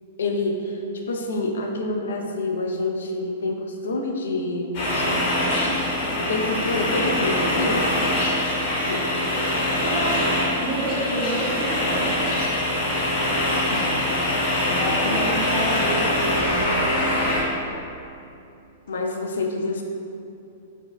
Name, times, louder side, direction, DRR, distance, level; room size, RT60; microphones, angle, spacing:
voice 1, 0.2-0.8 1.1-5.0 5.6-5.7 6.1-7.9 8.9-9.0 13.7-14.0 14.7-15.2 18.9-19.8, left 2 dB, 70° left, 2 dB, 0.3 m, -27 dB
sound 1, 4.7-17.4, left 1 dB, 50° left, 0.9 m, -23 dB
voice 2, 9.8-10.3 10.6-12.4 14.7-16.9, right 1 dB, 50° right, -5 dB, 0.8 m, -29 dB
3.9 x 2.1 x 2.3 m, 2.7 s
figure-of-eight pair, 105°, 0 cm